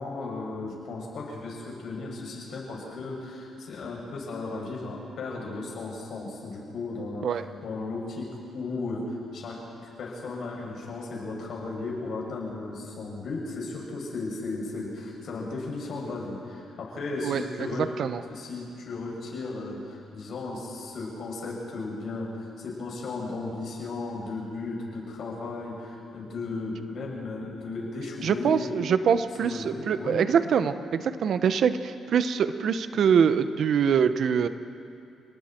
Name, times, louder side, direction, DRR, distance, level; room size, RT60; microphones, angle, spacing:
voice 1, 0.0-8.3 8.5-9.6 10.0-17.9 18.2-29.1 29.4-30.3, left 3 dB, 65° left, -2 dB, 6.9 m, -35 dB
voice 2, 17.8-18.2 28.2-34.5, right 7 dB, 60° right, 11 dB, 1.0 m, -24 dB
29.5 x 19.5 x 4.6 m, 2.5 s
cardioid pair, 90°, 0 cm